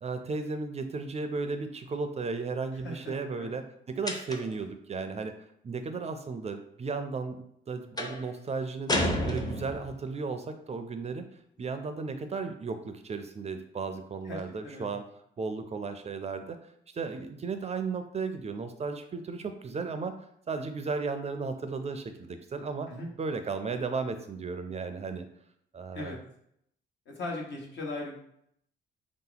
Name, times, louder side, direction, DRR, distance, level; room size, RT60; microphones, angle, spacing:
voice 1, 0.0-5.3 5.6-11.3 11.6-15.0 15.4-16.6 16.9-20.1 20.5-22.9 23.2-25.3 25.7-26.2, right 4 dB, 35° right, 8 dB, 0.4 m, -35 dB
voice 2, 2.8-3.5 14.2-14.9 22.9-23.1 25.9-26.2 27.2-28.2, left 2 dB, 65° left, -1 dB, 1.3 m, -38 dB
sound 1, 4.1-4.6 8.0-8.3 8.9-10.0, left 1 dB, 20° left, 0.6 m, -30 dB
3.6 x 2.8 x 3.9 m, 0.73 s
cardioid pair, 90°, 20 cm